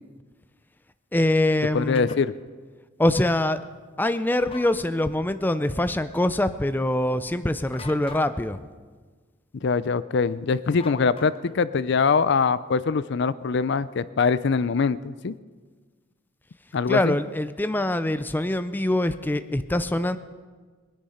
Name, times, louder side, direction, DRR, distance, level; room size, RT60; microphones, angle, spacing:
voice 1, 1.1-2.1 3.0-3.6 4.0-8.6 16.9-20.2, left 1 dB, 10° left, 11 dB, 0.5 m, -24 dB
voice 2, 1.7-2.3 9.6-15.3 16.7-17.2, left 5 dB, 65° left, 16 dB, 0.5 m, -23 dB
sound 1, 1.9-2.2 4.4-4.8 7.7-8.3 10.8-11.6, left 5 dB, 30° left, 1.0 m, -43 dB
22.0 x 10.0 x 5.7 m, 1.5 s
head